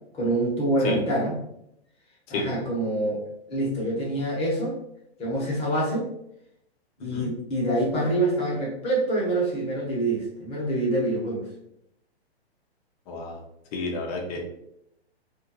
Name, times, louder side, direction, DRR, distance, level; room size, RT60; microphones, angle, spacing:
voice 1, 0.1-1.3 2.3-3.2 3.5-4.8 5.2-6.1 7.0-11.5, right 1 dB, 20° left, -5 dB, 1.1 m, -26 dB
voice 2, 13.1-13.4 13.7-14.4, left 3 dB, 35° left, 1 dB, 0.8 m, -31 dB
2.6 x 2.6 x 2.9 m, 0.77 s
hypercardioid pair, 125°, 32 cm